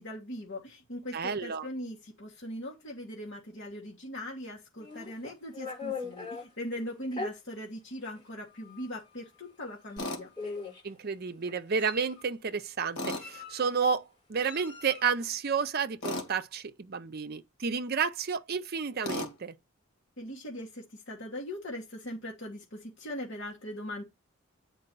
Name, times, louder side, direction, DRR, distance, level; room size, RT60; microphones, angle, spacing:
voice 1, 0.0-10.3 20.2-24.0, left 1 dB, 55° left, 1.8 m, -40 dB
voice 2, 1.1-1.7 10.8-19.5, right 6 dB, 45° right, 0.5 m, -31 dB
Meow, 4.8-6.4 7.1-7.3 8.2-8.3 8.6-8.9 9.9-10.0 10.4-10.9 11.5-12.2 13.0-13.8 14.4-15.1, left 4 dB, 20° left, 6.2 m, -40 dB
Tools, 10.0-10.2 13.0-13.3 16.0-16.3 19.0-19.3, left 1 dB, 90° left, 2.4 m, -34 dB
8.8 x 4.6 x 4.5 m
head